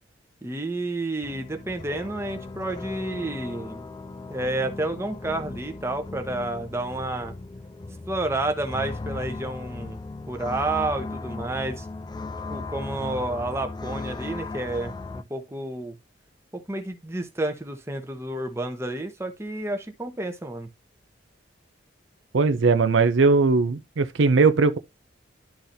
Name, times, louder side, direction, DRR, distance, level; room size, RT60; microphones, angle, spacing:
voice 1, 0.4-3.8 4.3-7.3 8.1-10.0 10.3-11.9 12.5-16.0 16.5-20.7, right 2 dB, 15° right, 0.9 m, -30 dB
sound 1, 1.2-15.2, left 3 dB, 20° left, 0.3 m, -37 dB
voice 2, 22.3-24.8, right 4 dB, 70° right, 0.5 m, -19 dB
11.5 x 3.9 x 2.7 m
head